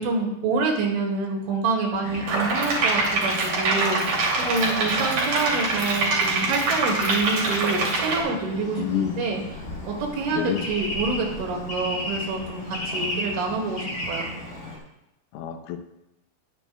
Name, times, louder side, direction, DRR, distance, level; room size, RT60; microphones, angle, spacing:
voice 1, 0.0-14.2, right 3 dB, 75° right, 1 dB, 4.2 m, -27 dB
Bird / Traffic noise roadway noise, 2.0-14.8, left 1 dB, 20° left, 2.2 m, -34 dB
sound 1, 2.3-8.2, right 3 dB, 50° right, 3.7 m, -24 dB
voice 2, 8.8-9.1 10.3-10.6 12.9-13.1 15.3-15.8, left 9 dB, 85° left, 7 dB, 3.4 m, -28 dB
20.0 x 9.1 x 2.3 m, 0.89 s
omnidirectional pair, 5.7 m